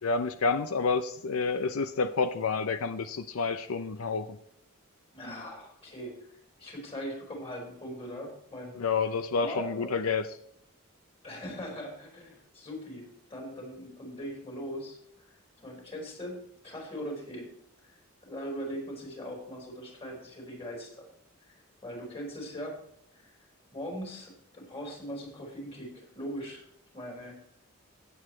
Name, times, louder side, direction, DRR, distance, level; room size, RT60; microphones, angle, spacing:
voice 1, 0.0-4.4 8.7-10.3, left 4 dB, 85° left, 11 dB, 0.6 m, -29 dB
voice 2, 5.1-6.1 6.6-8.8 9.4-9.9 11.2-15.0 15.6-17.5 17.8-18.0 18.2-21.0 21.4-22.8 23.1-23.3 23.7-26.7 26.9-27.4, equal, 25° left, 0 dB, 4.7 m, -40 dB
16.5 x 8.5 x 3.2 m, 0.72 s
head